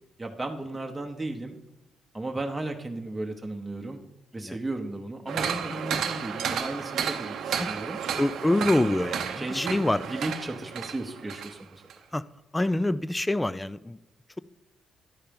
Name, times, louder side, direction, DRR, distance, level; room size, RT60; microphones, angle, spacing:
voice 1, 0.2-1.6 2.1-4.0 4.3-8.0 9.4-9.8 10.1-11.8, right 2 dB, 15° right, 0.9 m, -35 dB
sound 1, 5.3-11.5 11.9-12.0, right 7 dB, 75° right, 0.7 m, -32 dB
voice 2, 8.2-10.0 12.1-12.2 12.5-14.0, left 1 dB, 10° left, 0.3 m, -26 dB
11.5 x 4.4 x 5.2 m
cardioid pair, 90°, 0 cm